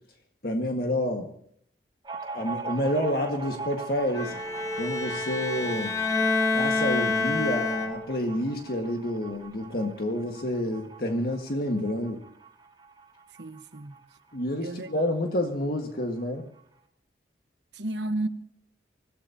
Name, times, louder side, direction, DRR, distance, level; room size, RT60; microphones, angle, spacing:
voice 1, 0.4-1.3 2.3-4.4 4.8-5.9 6.5-12.2 14.3-16.5, left 1 dB, 60° left, 1.8 m, -29 dB
sound 1, 2.0-15.2 15.5-15.6 15.8-16.6, right 4 dB, 25° right, 1.3 m, -42 dB
Bowed string instrument, 4.1-8.3, left 3 dB, 20° left, 1.0 m, -27 dB
voice 2, 13.4-14.0 14.6-14.9 17.7-18.3, right 2 dB, 90° right, 1.2 m, -32 dB
25.0 x 16.5 x 2.9 m
head